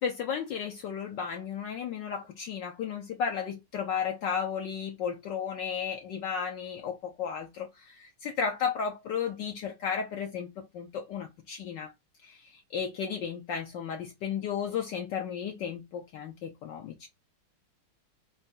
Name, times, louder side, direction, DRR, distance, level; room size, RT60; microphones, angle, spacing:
voice 1, 0.0-11.9 12.2-17.1, left 7 dB, 65° left, 1.3 m, -34 dB
4.2 x 2.8 x 3.7 m
omnidirectional pair, 2.2 m